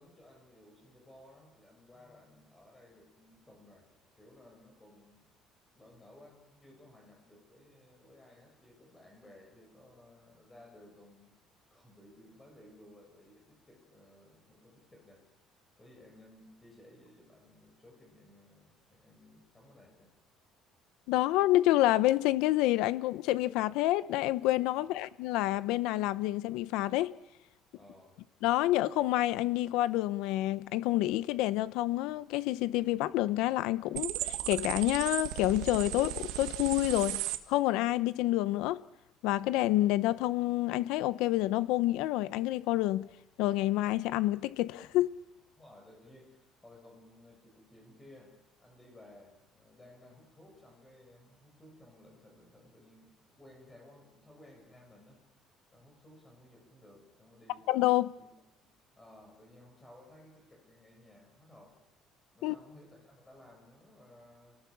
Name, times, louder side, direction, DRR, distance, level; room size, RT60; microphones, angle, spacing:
voice 1, 0.0-5.3 5.7-11.4 11.7-15.2 15.8-20.1 24.8-25.0 27.7-28.1 45.5-48.3 48.6-55.2 55.7-57.7 58.2-58.3 58.6-61.8 62.3-64.6, left 1 dB, 10° left, 7.2 m, -57 dB
voice 2, 21.1-27.1 28.4-38.8 39.2-43.1 43.4-45.1 57.7-58.1 62.4-62.5, left 16 dB, 80° left, 0.8 m, -28 dB
sound 1, 33.9-37.4, right 14 dB, 90° right, 1.5 m, -36 dB
28.5 x 18.5 x 7.2 m
cardioid pair, 170°, 0 cm